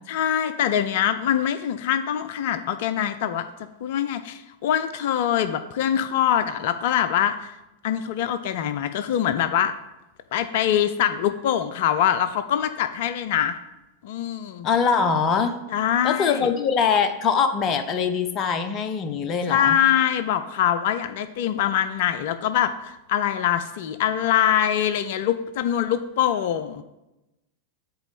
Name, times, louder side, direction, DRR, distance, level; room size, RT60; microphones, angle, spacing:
voice 1, 0.1-3.5 3.8-7.6 7.8-9.7 10.3-13.6 14.0-14.7 15.7-16.5 19.5-26.8, left 10 dB, 50° left, 11 dB, 0.4 m, -23 dB
voice 2, 14.6-15.5 16.0-19.8, left 6 dB, 30° left, 8 dB, 0.8 m, -22 dB
7.9 x 4.2 x 6.9 m, 0.95 s
figure-of-eight pair, 90°, 0 cm